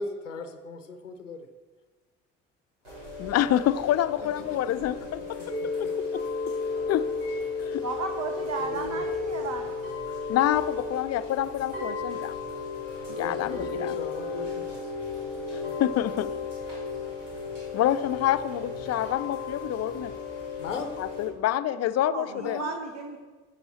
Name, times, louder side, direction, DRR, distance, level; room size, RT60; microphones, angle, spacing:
voice 1, 0.0-1.5 4.3-4.9 5.4-5.9 6.6-6.8 8.6-9.0 13.1-15.8 20.6-20.9 22.3-22.8, left 4 dB, 90° left, 7 dB, 0.7 m, -39 dB
Chime / Rain, 2.8-21.2, left 4 dB, 85° right, 3.2 m, -34 dB
voice 2, 3.2-5.2 5.8-6.2 6.9-7.0 7.6-7.8 10.3-12.3 13.2-14.0 15.5-16.3 17.7-20.1 21.0-22.6, left 12 dB, 45° left, 13 dB, 0.6 m, -27 dB
voice 3, 7.8-9.7 22.1-23.2, right 4 dB, 45° right, 3 dB, 1.4 m, -34 dB
13.5 x 8.1 x 4.3 m, 1.3 s
figure-of-eight pair, 50°, 36 cm